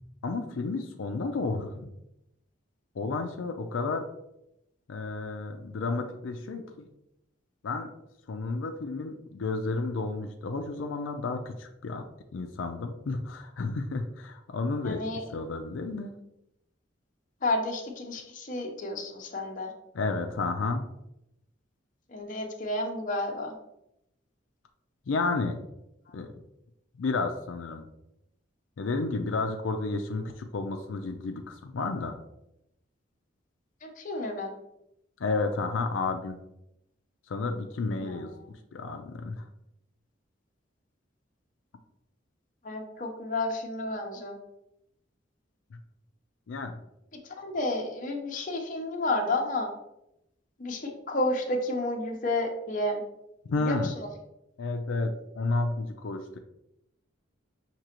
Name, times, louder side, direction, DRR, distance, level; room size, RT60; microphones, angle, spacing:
voice 1, 0.2-1.9 3.0-4.0 4.9-6.9 7.6-7.9 8.3-12.0 12.3-15.0 15.3-16.1 19.9-20.9 25.1-25.6 26.1-26.3 27.0-27.9 28.8-32.1 35.2-36.4 37.3-38.3 38.7-39.5 45.7-45.8 46.5-46.8 53.5-53.9 54.6-56.4, left 3 dB, 85° left, 5 dB, 0.4 m, -31 dB
voice 2, 14.8-15.2 17.4-19.7 22.1-23.5 33.8-34.5 38.0-38.5 42.6-44.4 47.4-49.7 50.6-53.0 53.6-53.9, left 2 dB, 40° left, 2 dB, 0.7 m, -31 dB
6.0 x 2.9 x 2.9 m, 0.84 s
head